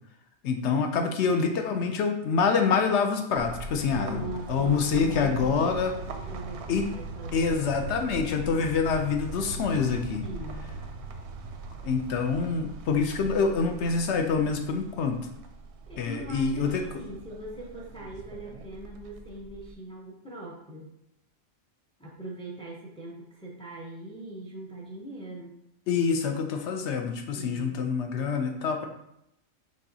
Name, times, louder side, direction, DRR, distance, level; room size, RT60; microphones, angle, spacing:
voice 1, 0.4-4.2 4.5-5.9 6.7-6.9 7.3-10.2 11.8-15.2 16.0-16.9 25.9-28.9, left 5 dB, 65° left, 5 dB, 0.7 m, -26 dB
sound 1, 3.4-19.7, right 4 dB, 65° right, 0.7 m, -40 dB
voice 2, 3.9-7.8 10.2-10.7 15.9-20.9 22.0-25.6 27.3-27.8, right 1 dB, 5° left, -1 dB, 0.4 m, -41 dB
5.4 x 3.6 x 2.7 m, 0.78 s
omnidirectional pair, 1.4 m